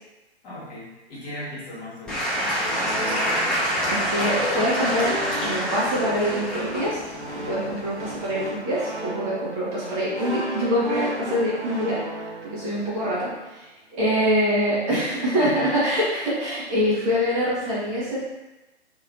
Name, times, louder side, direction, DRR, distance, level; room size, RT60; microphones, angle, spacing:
voice 1, 0.4-3.2 14.9-15.7 16.9-17.0, left 1 dB, 35° left, -8 dB, 1.4 m, -37 dB
Applause / Crowd, 2.1-8.4, equal, 5° left, 0.5 m, -26 dB
sound 1, 2.6-13.5, right 1 dB, 85° right, 0.8 m, -34 dB
voice 2, 3.9-7.0 7.4-12.0 12.4-18.2, equal, 30° right, -8 dB, 1.1 m, -25 dB
3.1 x 2.9 x 2.5 m, 1.0 s
figure-of-eight pair, 115°, 34 cm